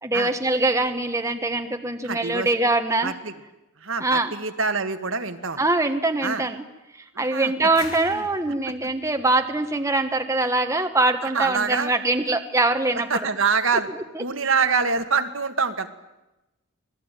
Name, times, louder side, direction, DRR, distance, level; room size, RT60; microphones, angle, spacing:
voice 1, 0.0-3.1 4.0-4.3 5.6-6.6 7.2-13.1 14.1-14.2, right 2 dB, 15° right, 6 dB, 1.4 m, -23 dB
voice 2, 2.0-2.5 3.0-3.3 3.8-5.6 6.2-6.5 7.1-7.5 8.1-8.2 8.7-8.8 11.2-11.9 13.1-13.9 14.2-15.9, right 5 dB, 65° right, 7 dB, 1.9 m, -25 dB
sound 1, 7.7-10.4, left 4 dB, 85° left, 6.0 m, -44 dB
27.0 x 19.5 x 9.2 m, 0.97 s
head